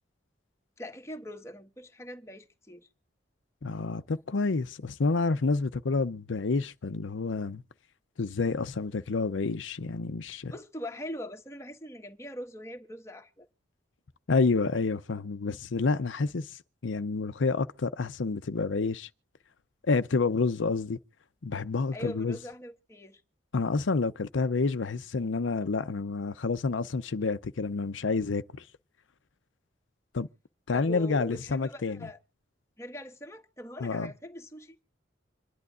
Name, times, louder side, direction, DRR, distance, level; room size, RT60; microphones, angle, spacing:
voice 1, 0.8-2.9 10.5-13.5 21.9-23.2 30.7-32.2 32.8-34.8, left 1 dB, 15° left, 1.4 m, -42 dB
voice 2, 3.6-7.6 8.2-10.5 14.3-19.1 19.9-21.0 21.4-22.4 23.5-28.7 30.1-30.3 30.7-32.0 33.8-34.1, left 4 dB, 85° left, 0.6 m, -29 dB
26.5 x 11.0 x 2.5 m
head